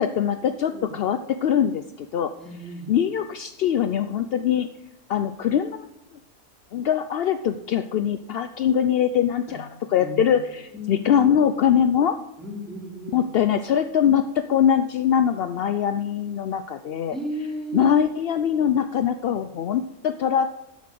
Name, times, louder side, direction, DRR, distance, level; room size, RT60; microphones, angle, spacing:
voice 1, 0.0-2.3 2.9-4.7 5.1-5.9 6.7-12.2 13.1-17.2 17.7-20.5, left 9 dB, 65° left, 10 dB, 0.6 m, -22 dB
voice 2, 0.6-0.9 2.4-2.9 9.5-9.6 10.0-10.3 10.7-11.2 12.4-13.2 17.1-18.0, right 1 dB, ahead, -3 dB, 3.5 m, -34 dB
12.0 x 7.3 x 7.6 m, 0.89 s
omnidirectional pair, 1.5 m